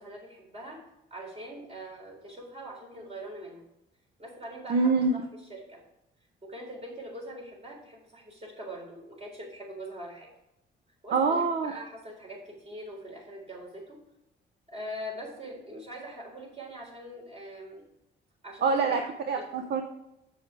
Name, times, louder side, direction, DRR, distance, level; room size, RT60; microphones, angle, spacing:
voice 1, 0.0-3.6 4.2-5.8 6.4-10.3 11.0-14.0 14.7-17.8 18.4-19.1, equal, 30° right, 0 dB, 3.7 m, -42 dB
voice 2, 4.7-5.1 11.1-11.7 18.6-19.0 19.3-19.8, right 4 dB, 55° right, 6 dB, 0.8 m, -25 dB
7.3 x 7.2 x 4.6 m, 0.87 s
cardioid pair, 90°, 20 cm